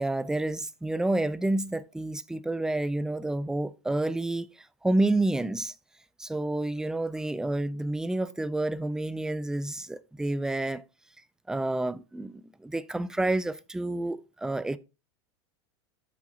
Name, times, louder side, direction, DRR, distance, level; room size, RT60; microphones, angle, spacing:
voice 1, 0.0-4.5 4.8-5.7 6.2-10.8 11.5-14.8, right 2 dB, 5° right, 0.4 m, -29 dB
8.5 x 5.6 x 3.9 m
hypercardioid pair, 115°, 15 cm